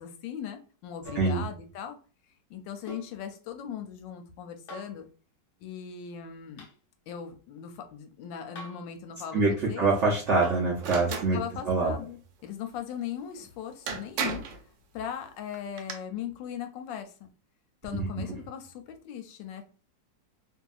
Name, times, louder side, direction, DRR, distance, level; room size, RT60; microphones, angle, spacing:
voice 1, 0.0-2.0 2.5-5.1 5.6-6.7 7.1-9.9 11.1-14.4 14.9-17.3 17.8-19.6, left 8 dB, 90° left, 7 dB, 1.3 m, -39 dB
sound 1, 1.0-1.4 2.9-3.2 4.7-5.0 6.6-6.8 8.6-8.9 10.4-10.7 12.5-12.6, equal, 65° left, 1.1 m, -44 dB
voice 2, 9.8-11.4 11.7-11.9 18.0-18.1, right 3 dB, 65° right, -5 dB, 0.7 m, -24 dB
sound 2, 10.8-11.3 13.4-13.5 13.9-14.6 15.5-15.9, right 6 dB, 85° right, 1.3 m, -33 dB
2.8 x 2.7 x 2.3 m, 0.37 s
omnidirectional pair, 1.9 m